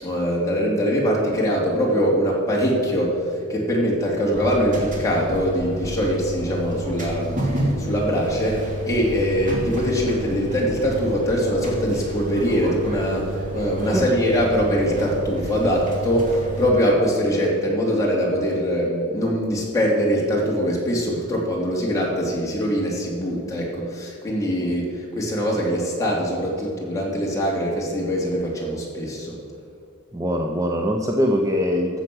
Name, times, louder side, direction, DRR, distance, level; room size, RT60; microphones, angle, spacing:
voice 1, 0.0-3.2 3.5-7.5 7.8-29.4, equal, 15° left, -4 dB, 3.0 m, -22 dB
sound 1, 4.3-16.7, right 1 dB, 35° right, 2.6 m, -30 dB
voice 2, 30.1-32.0, equal, 15° right, 2 dB, 0.7 m, -22 dB
14.0 x 7.5 x 6.3 m, 2.4 s
head